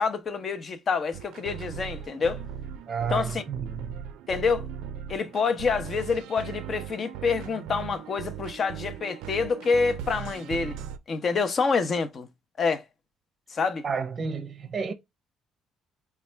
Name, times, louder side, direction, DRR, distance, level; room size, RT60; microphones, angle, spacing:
voice 1, 0.0-2.4 3.1-3.4 4.3-4.7 5.1-10.8 11.1-12.3 12.6-12.8 13.5-13.8, left 5 dB, 40° left, 0.7 m, -27 dB
sound 1, 1.1-11.0, right 9 dB, 90° right, 0.4 m, -38 dB
voice 2, 2.9-4.0 13.8-14.9, right 5 dB, 35° right, 0.6 m, -31 dB
4.1 x 2.3 x 3.3 m
cardioid pair, 95°, 0 cm